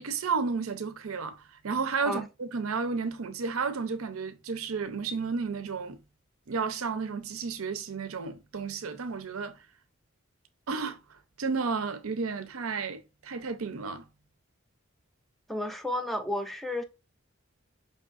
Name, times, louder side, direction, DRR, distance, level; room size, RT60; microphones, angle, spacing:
voice 1, 0.0-6.0 6.5-9.5 10.7-11.0 11.4-14.1, right 5 dB, 90° right, 0.6 m, -32 dB
voice 2, 15.5-16.8, left 1 dB, ahead, 0.4 m, -32 dB
5.4 x 3.6 x 2.4 m
head